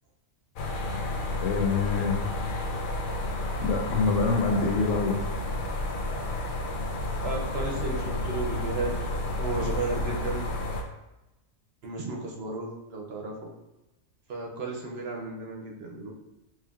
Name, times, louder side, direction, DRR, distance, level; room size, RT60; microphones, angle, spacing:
sound 1, 0.6-10.8, left 1 dB, 60° left, 0.5 m, -31 dB
voice 1, 1.4-2.2 3.6-5.2, left 4 dB, 80° left, 2 dB, 1.0 m, -25 dB
voice 2, 7.2-8.9 9.4-10.5 11.8-13.5 14.3-16.1, right 3 dB, 65° right, 0 dB, 0.8 m, -34 dB
4.2 x 3.1 x 2.3 m, 0.98 s
omnidirectional pair, 1.3 m